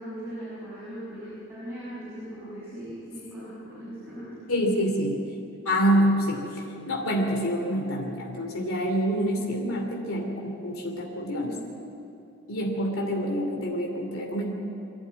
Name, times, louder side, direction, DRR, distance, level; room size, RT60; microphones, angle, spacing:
voice 1, 0.0-4.3, equal, 10° right, -13 dB, 6.4 m, -39 dB
voice 2, 4.5-5.2 5.6-11.6 12.5-14.5, equal, 90° left, 0 dB, 2.9 m, -27 dB
24.0 x 11.5 x 9.4 m, 2.7 s
head